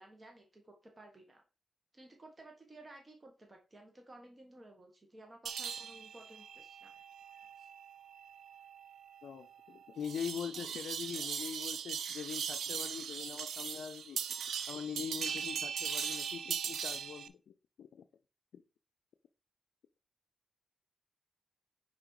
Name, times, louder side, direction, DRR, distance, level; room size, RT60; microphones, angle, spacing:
voice 1, 0.0-1.4 1.9-6.9, right 1 dB, 30° right, 1.3 m, -55 dB
Tibetan bells loop, 5.5-17.3, right 7 dB, 80° right, 0.5 m, -40 dB
voice 2, 9.2-14.2 14.7-17.4 17.8-18.1 18.5-18.6, left 7 dB, 80° left, 0.4 m, -42 dB
5.0 x 4.1 x 4.6 m
cardioid pair, 65°, 0 cm